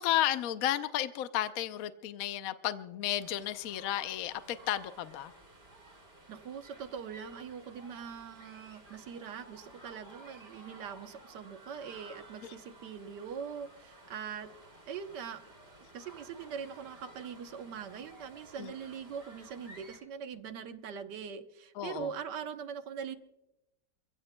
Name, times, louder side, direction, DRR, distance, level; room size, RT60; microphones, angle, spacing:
voice 1, 0.0-5.3 18.6-18.7 21.8-22.1, left 12 dB, 65° left, 11 dB, 1.0 m, -33 dB
sound 1, 3.2-20.0, right 2 dB, 35° right, 3.1 m, -55 dB
voice 2, 6.3-14.5 14.9-15.4 15.9-23.2, right 7 dB, 75° right, 8 dB, 1.6 m, -42 dB
28.5 x 16.0 x 2.2 m, 0.91 s
omnidirectional pair, 1.9 m